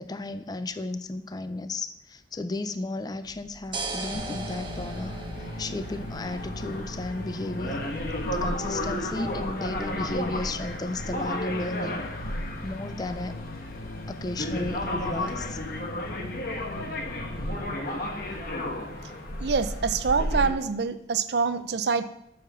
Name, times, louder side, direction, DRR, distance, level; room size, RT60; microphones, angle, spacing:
voice 1, 0.0-5.1 5.6-7.8 8.2-12.0 12.6-13.4 14.1-15.6, left 2 dB, 20° left, 12 dB, 0.4 m, -34 dB
sound 1, 3.2-15.4, right 2 dB, 25° right, 0.8 m, -42 dB
sound 2, 4.0-20.5, left 1 dB, 50° left, 1.1 m, -33 dB
sound 3, 4.1-17.7, left 1 dB, 75° left, 0.8 m, -40 dB
voice 2, 19.4-22.0, right 5 dB, 65° right, 12 dB, 0.5 m, -25 dB
6.2 x 5.7 x 6.7 m, 0.81 s
head